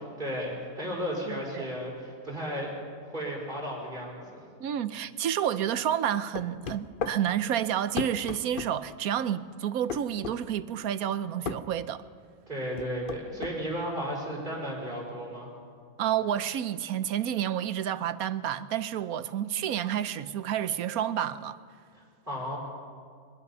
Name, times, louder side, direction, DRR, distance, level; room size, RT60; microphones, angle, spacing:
voice 1, 0.2-2.7 3.0-4.4 12.5-15.5 21.9-22.6, equal, 35° right, 5.1 m, -34 dB
voice 2, 1.2-1.6 4.6-12.0 16.0-21.6, right 10 dB, 90° right, 1.2 m, -30 dB
sound 1, 6.3-7.2 8.0-8.7 9.9-10.4 11.4-11.6 12.8-13.6, left 6 dB, 45° left, 0.8 m, -34 dB
23.0 x 21.5 x 5.6 m
omnidirectional pair, 1.5 m